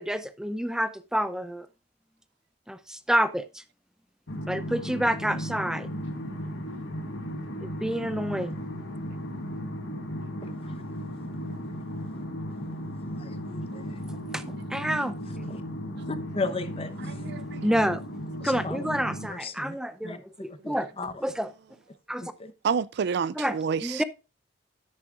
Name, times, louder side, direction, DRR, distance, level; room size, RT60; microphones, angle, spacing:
voice 1, 0.0-1.7 2.7-3.6 4.5-5.9 7.6-8.6 14.3-15.2 17.6-18.0 18.4-20.9 21.2-21.5 22.1-22.3 23.4-23.6 23.8-24.0, equal, 5° right, 0.5 m, -28 dB
sound 1, 4.3-19.3, equal, 85° left, 1.7 m, -36 dB
voice 2, 10.4-10.7 13.2-14.0 15.5-15.6 16.1-17.1 18.4-18.9 19.3-19.8 20.0-20.2 20.6-21.1 22.2-22.5, left 3 dB, 30° left, 0.9 m, -36 dB
voice 3, 17.0-17.7 22.6-24.0, right 6 dB, 60° right, 0.4 m, -29 dB
9.7 x 9.4 x 2.5 m
head